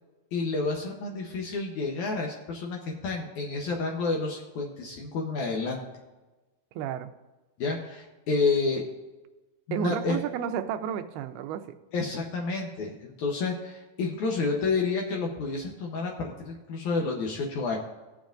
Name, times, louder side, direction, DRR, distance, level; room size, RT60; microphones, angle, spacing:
voice 1, 0.3-5.9 7.6-8.8 9.7-10.2 11.9-17.8, left 4 dB, 70° left, 0 dB, 1.9 m, -29 dB
voice 2, 6.8-7.1 9.7-11.8, right 9 dB, 85° right, 9 dB, 2.6 m, -32 dB
17.5 x 7.2 x 2.6 m, 1.1 s
omnidirectional pair, 4.4 m